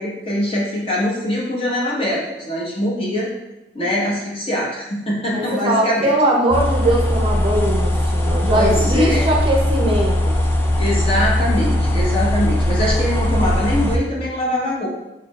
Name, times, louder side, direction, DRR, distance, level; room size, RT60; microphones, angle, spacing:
voice 1, 0.0-3.3 3.7-6.1 8.5-9.3 10.8-14.9, left 1 dB, 30° left, -5 dB, 1.2 m, -23 dB
voice 2, 5.3-10.5, right 1 dB, 30° right, -1 dB, 0.6 m, -20 dB
sound 1, 6.5-14.0, left 1 dB, 15° left, 0.4 m, -19 dB
4.8 x 4.2 x 2.4 m, 0.99 s
head